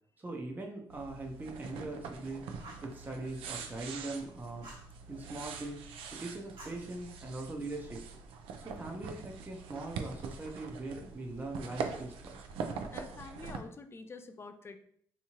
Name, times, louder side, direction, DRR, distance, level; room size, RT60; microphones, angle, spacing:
voice 1, 0.2-2.5 2.8-4.7 5.1-5.8 6.1-8.0 8.6-12.4, right 2 dB, 20° right, 1 dB, 0.6 m, -41 dB
sound 1, 0.9-13.6, right 5 dB, 90° right, 0.4 m, -43 dB
Fire, 2.6-2.9 4.6-4.9 6.6-7.5, right 1 dB, 65° right, 1.1 m, -52 dB
voice 2, 12.9-14.8, left 4 dB, 30° left, 8 dB, 0.4 m, -47 dB
3.5 x 2.8 x 2.9 m, 0.64 s
cardioid pair, 80°, 9 cm